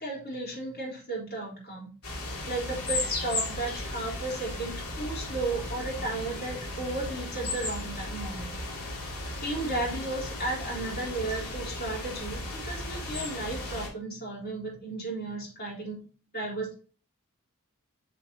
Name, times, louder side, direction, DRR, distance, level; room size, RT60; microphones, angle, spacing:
voice 1, 0.0-1.9 2.5-8.6 9.4-16.0 16.3-16.7, right 2 dB, 45° left, -4 dB, 4.0 m, -34 dB
sound 1, 2.0-13.9, left 2 dB, 75° left, 2.4 m, -35 dB
7.5 x 6.9 x 2.8 m, 0.40 s
head